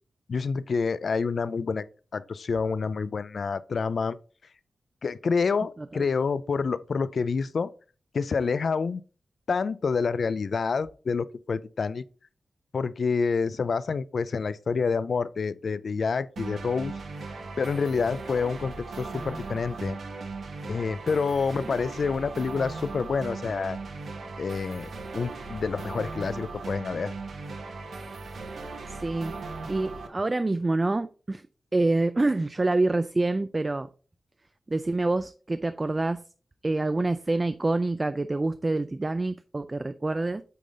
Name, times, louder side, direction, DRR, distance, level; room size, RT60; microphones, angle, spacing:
voice 1, 0.3-1.9 2.1-4.2 5.0-7.7 8.1-9.0 9.5-12.0 12.7-16.9 17.6-20.0 20.7-23.8 24.4-27.1, left 5 dB, 60° left, 0.4 m, -28 dB
sound 1, 16.4-30.1, right 3 dB, 75° right, 1.1 m, -38 dB
voice 2, 28.9-29.3 29.7-31.4 31.7-33.9 34.7-36.2 36.6-40.4, right 2 dB, 25° right, 0.3 m, -26 dB
8.3 x 3.9 x 3.9 m
wide cardioid pair, 105°, 0 cm